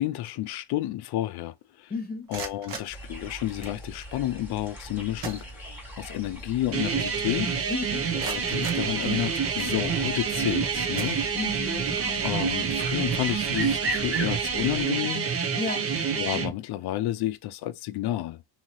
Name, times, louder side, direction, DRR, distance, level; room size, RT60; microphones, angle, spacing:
voice 1, 0.0-1.9 2.3-5.4 6.0-7.5 8.2-11.2 12.2-15.3 16.2-18.4, left 14 dB, 60° left, 0.5 m, -30 dB
voice 2, 1.9-2.3 7.7-8.1 11.3-12.3 15.6-15.9, left 3 dB, 20° left, 1.5 m, -33 dB
sound 1, 2.1-3.8 4.8-4.9 5.2-6.1 6.5-6.6 7.1-7.2 7.8-9.6 10.3-10.5 10.9-11.8, right 5 dB, 50° right, 1.0 m, -41 dB
sound 2, 2.9-14.8, right 1 dB, 5° right, 1.4 m, -40 dB
sound 3, 6.7-16.5, right 6 dB, 30° right, 0.6 m, -28 dB
2.8 x 2.7 x 3.0 m
cardioid pair, 135°, 46 cm